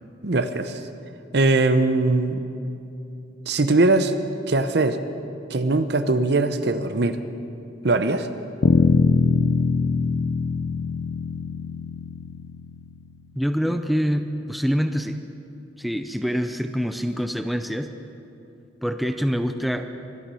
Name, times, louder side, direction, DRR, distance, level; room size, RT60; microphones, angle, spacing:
voice 1, 0.2-0.8 1.3-2.4 3.5-4.2 4.5-5.0 5.5-7.2 7.8-8.3, right 2 dB, 60° right, 10 dB, 0.7 m, -21 dB
Bass guitar, 8.6-13.1, left 5 dB, 85° left, 0.5 m, -22 dB
voice 2, 13.4-15.2 15.8-17.9 18.8-19.9, equal, ahead, 7 dB, 0.5 m, -25 dB
24.0 x 9.1 x 5.6 m, 2.7 s
head